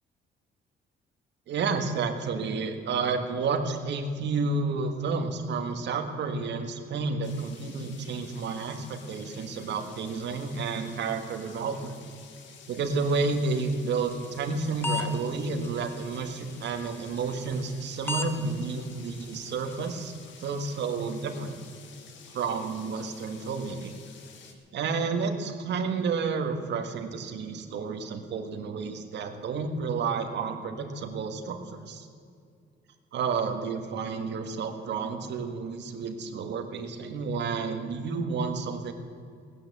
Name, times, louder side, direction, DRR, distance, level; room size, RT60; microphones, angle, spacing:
voice 1, 1.5-11.9 12.7-20.1 20.4-21.6 22.3-24.0 24.7-32.1 33.1-38.9, right 4 dB, 65° right, 5 dB, 1.7 m, -31 dB
sound 1, 7.2-24.5, left 6 dB, 75° left, 1.8 m, -51 dB
sound 2, 12.8-20.1, left 3 dB, 10° left, 0.8 m, -41 dB
17.5 x 10.5 x 7.6 m, 2.3 s
cardioid pair, 155°, 20 cm